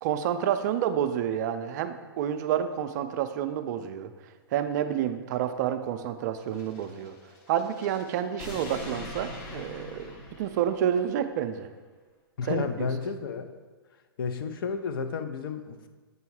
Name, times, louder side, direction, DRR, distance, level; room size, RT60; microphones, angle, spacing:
voice 1, 0.0-7.1 7.5-11.7 12.4-12.9, right 9 dB, 45° right, 9 dB, 0.4 m, -29 dB
sound 1, 6.4-11.2, left 2 dB, 45° left, 1.1 m, -43 dB
voice 2, 12.4-13.5 14.2-15.9, left 5 dB, 60° left, 7 dB, 0.6 m, -31 dB
7.8 x 2.7 x 4.7 m, 1.4 s
hypercardioid pair, 120°, 13 cm